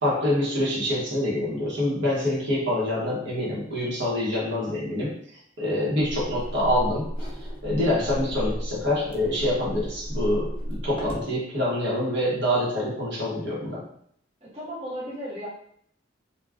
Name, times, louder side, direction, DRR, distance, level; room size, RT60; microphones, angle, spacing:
voice 1, 0.0-7.3 7.6-13.8, left 1 dB, 65° right, -6 dB, 1.0 m, -26 dB
sound 1, 6.0-11.3, equal, 30° left, 0.7 m, -33 dB
voice 2, 14.4-15.5, equal, 30° right, -8 dB, 0.9 m, -35 dB
2.4 x 2.2 x 3.4 m, 0.68 s
head